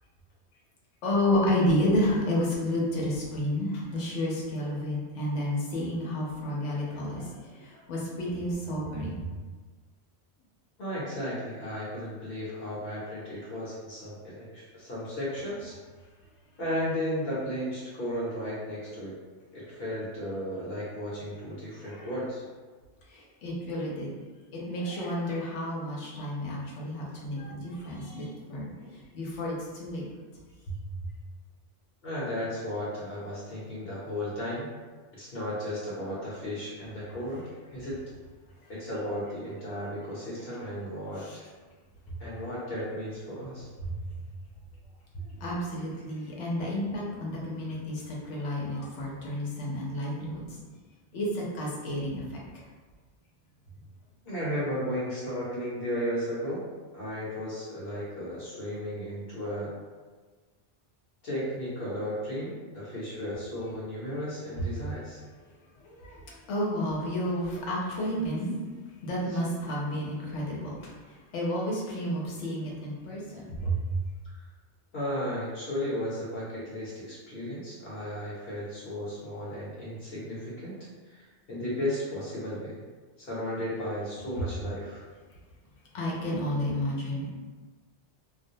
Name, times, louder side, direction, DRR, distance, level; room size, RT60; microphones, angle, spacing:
voice 1, 1.0-9.3 21.9-22.1 23.1-24.1 24.5-30.1 30.7-30.8 41.2-41.4 43.8-44.2 45.1-50.6 51.1-52.4 65.8-68.6 69.0-73.8 85.9-87.3, left 1 dB, 85° left, -4 dB, 1.0 m, -31 dB
voice 2, 10.8-15.7 16.6-19.1 19.5-22.4 32.0-34.7 35.1-38.0 38.7-41.5 42.2-43.7 54.2-56.6 56.9-59.7 61.2-65.2 74.2-74.3 74.9-80.8 81.1-82.7 83.2-85.0, equal, 60° left, -8 dB, 0.9 m, -34 dB
2.4 x 2.1 x 2.7 m, 1.4 s
omnidirectional pair, 1.2 m